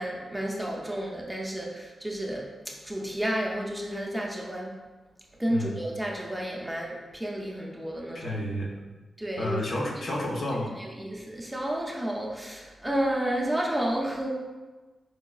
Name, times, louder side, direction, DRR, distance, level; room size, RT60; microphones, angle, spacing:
voice 1, 0.0-4.8 5.4-8.3 9.2-9.6 10.1-10.2 10.8-14.3, right 1 dB, 5° right, -2 dB, 0.4 m, -31 dB
voice 2, 8.1-8.7 9.4-10.7, left 1 dB, 65° left, -3 dB, 0.6 m, -31 dB
4.6 x 2.2 x 2.3 m, 1.3 s
wide cardioid pair, 95°, 0 cm